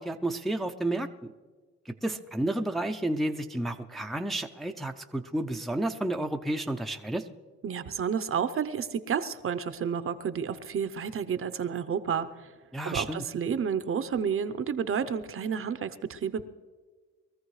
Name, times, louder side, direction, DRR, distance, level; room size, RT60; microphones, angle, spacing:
voice 1, 0.0-1.3 1.9-7.3 12.7-13.2, right 1 dB, ahead, 5 dB, 0.6 m, -31 dB
voice 2, 7.6-12.5 12.8-16.5, right 7 dB, 45° right, 11 dB, 0.7 m, -30 dB
22.5 x 14.0 x 3.2 m, 1.4 s
cardioid pair, 90°, 30 cm